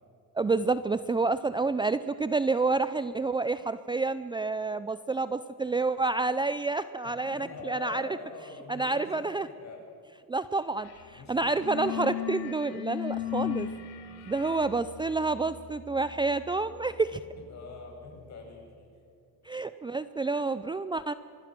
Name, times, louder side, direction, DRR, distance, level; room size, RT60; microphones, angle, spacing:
voice 1, 0.4-8.1 8.7-9.5 10.3-13.7 14.3-17.2 19.4-21.1, right 3 dB, 15° right, 13 dB, 0.5 m, -29 dB
voice 2, 7.0-9.8 11.1-12.0 14.2-14.8 17.3-18.9, left 3 dB, 50° left, 1 dB, 7.2 m, -45 dB
sound 1, 10.8-11.1 11.4-18.0, left 12 dB, 85° left, 2.9 m, -38 dB
25.0 x 21.0 x 6.1 m, 2.4 s
cardioid pair, 100°, 36 cm